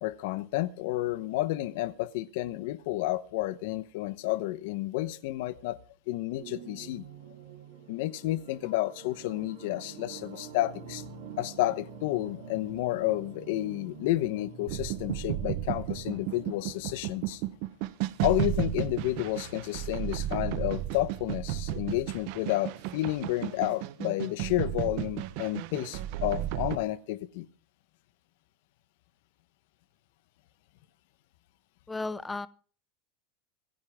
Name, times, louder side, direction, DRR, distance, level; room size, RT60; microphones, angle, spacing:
voice 1, 0.0-5.8 6.1-7.1 7.9-11.0 11.4-17.4 18.2-27.5, left 16 dB, 55° left, 1.0 m, -31 dB
sound 1, 6.4-16.4, right 5 dB, 75° right, 6.9 m, -47 dB
sound 2, 14.7-26.8, right 13 dB, 50° right, 1.0 m, -33 dB
voice 2, 31.9-32.5, left 3 dB, 5° left, 0.6 m, -34 dB
25.0 x 10.5 x 3.6 m
supercardioid pair, 180°, 0 cm